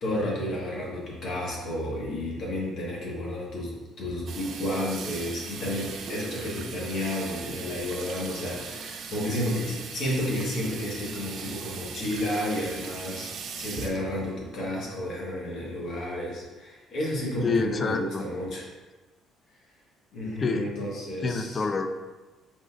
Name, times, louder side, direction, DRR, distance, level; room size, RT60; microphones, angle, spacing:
voice 1, 0.0-18.6 20.1-21.6, left 1 dB, 55° left, -3 dB, 1.4 m, -31 dB
Water tap faucet / Sink (filling or washing), 4.3-15.2, right 5 dB, 55° right, 0.4 m, -39 dB
voice 2, 17.4-18.2 20.4-20.7 21.2-21.9, left 4 dB, 30° left, 7 dB, 0.3 m, -27 dB
4.9 x 4.0 x 2.4 m, 1.2 s
cardioid pair, 120°, 0 cm